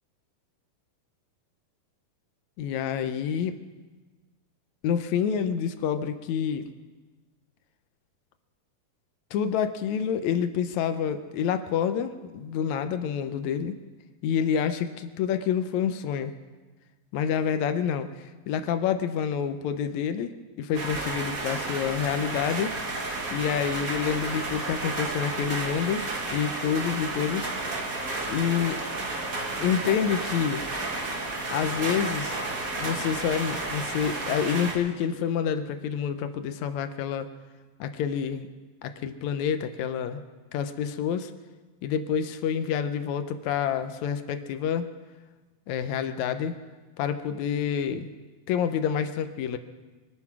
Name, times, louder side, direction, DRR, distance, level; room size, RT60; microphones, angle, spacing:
voice 1, 2.6-3.6 4.8-6.7 9.3-13.8 14.2-16.3 17.1-27.9 28.3-28.8 29.6-30.6 31.5-32.4 32.8-37.3 37.8-38.5 38.8-40.2 40.5-41.3 41.8-44.9 45.7-46.6 47.0-48.1 48.5-49.6, left 8 dB, 75° left, 10 dB, 1.8 m, -28 dB
sound 1, 20.7-34.7, right 2 dB, 35° right, 1.5 m, -32 dB
24.0 x 9.6 x 6.0 m, 1.3 s
omnidirectional pair, 3.8 m